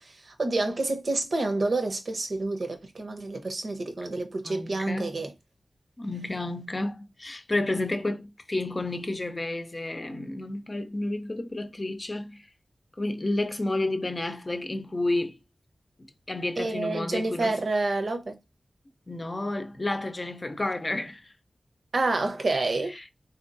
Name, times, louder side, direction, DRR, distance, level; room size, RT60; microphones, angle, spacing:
voice 1, 0.0-5.3 16.6-18.4 21.9-22.9, right 2 dB, 70° right, 0.9 m, -28 dB
voice 2, 4.4-5.2 6.0-12.5 13.0-15.4 16.3-17.6 19.1-21.3 22.9-23.0, left 2 dB, 35° left, 0.6 m, -31 dB
3.7 x 2.9 x 2.6 m
cardioid pair, 50°, 0 cm